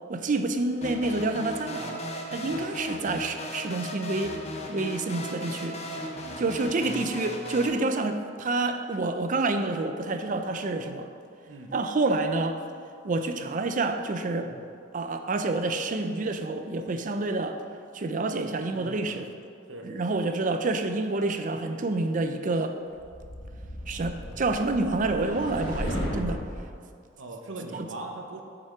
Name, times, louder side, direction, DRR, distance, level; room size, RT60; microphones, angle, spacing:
voice 1, 0.1-2.0 2.3-4.4 4.7-5.8 6.4-11.1 11.7-12.6 13.0-14.5 14.9-17.6 17.9-19.3 19.8-22.8 23.9-26.4 27.7-27.9, right 2 dB, 45° right, 7 dB, 0.5 m, -28 dB
sound 1, 0.8-7.7, left 1 dB, 35° left, 0.7 m, -36 dB
voice 2, 6.1-6.6 11.5-11.7 14.4-14.6 18.7-19.2 19.7-19.9 27.2-28.4, right 2 dB, 85° right, 3 dB, 0.8 m, -41 dB
sound 2, 23.0-26.7, equal, 75° left, 1.2 m, -35 dB
6.8 x 5.4 x 5.0 m, 2.3 s
head